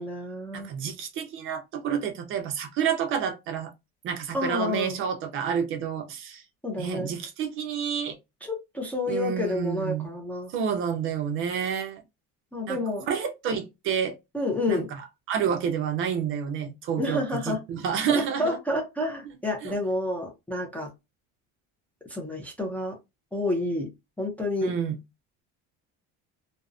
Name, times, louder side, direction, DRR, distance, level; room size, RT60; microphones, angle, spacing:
voice 1, 0.0-0.7 4.3-5.0 6.6-7.1 8.4-10.5 12.5-13.1 14.3-14.9 17.0-17.6 18.1-20.9 22.1-23.0 23.3-23.9 24.2-24.7, left 2 dB, 5° left, 0.4 m, -29 dB
voice 2, 0.5-3.7 4.0-6.4 6.8-8.2 9.1-10.1 10.5-12.0 12.7-12.8 13.1-14.2 14.7-14.8 15.3-18.6 19.6-19.7 24.6-25.0, right 7 dB, 45° right, 0.5 m, -29 dB
2.6 x 2.0 x 2.4 m
cardioid pair, 160°, 29 cm